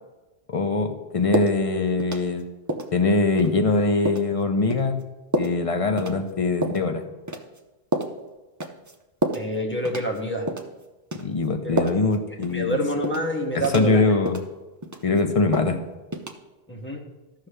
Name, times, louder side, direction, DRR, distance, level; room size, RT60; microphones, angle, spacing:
voice 1, 0.5-2.5 2.9-5.0 5.4-7.0 11.1-12.8 13.5-14.4 15.0-15.8, left 3 dB, 35° left, 6 dB, 0.8 m, -22 dB
sound 1, 1.3-1.6 2.0-2.4 2.7-2.9 3.4-3.5 4.1-4.3 4.7-4.8 5.3-5.6 6.0-6.2 6.6-6.8 7.3-7.6 7.9-8.1 8.6-8.9 9.2-9.5 9.8-10.2 10.5-10.7 11.1-11.3 11.8-12.1 12.4-12.6 13.0-13.3 13.6-13.9 14.3-14.5 14.8-15.2 15.5-15.8 16.1-16.3, right 1 dB, 20° right, 0.6 m, -28 dB
voice 2, 9.3-10.5 11.6-11.9 12.5-14.2 16.7-17.1, equal, 10° left, 1 dB, 1.2 m, -27 dB
14.5 x 5.7 x 3.3 m, 1.1 s
omnidirectional pair, 1.0 m